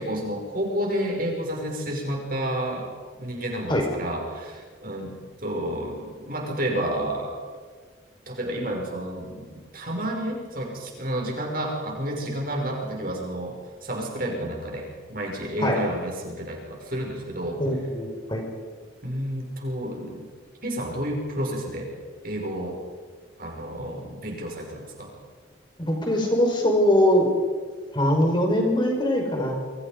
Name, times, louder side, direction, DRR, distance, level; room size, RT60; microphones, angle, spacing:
voice 1, 0.0-2.9 3.2-5.1 5.4-7.4 8.3-17.6 19.0-20.3 20.6-21.9 22.2-22.8 23.4-25.1, right 1 dB, 45° right, 1 dB, 6.2 m, -30 dB
voice 2, 17.6-18.4 25.8-27.2 27.9-29.6, left 1 dB, 25° left, 1 dB, 5.1 m, -22 dB
28.0 x 25.5 x 5.3 m, 1.5 s
head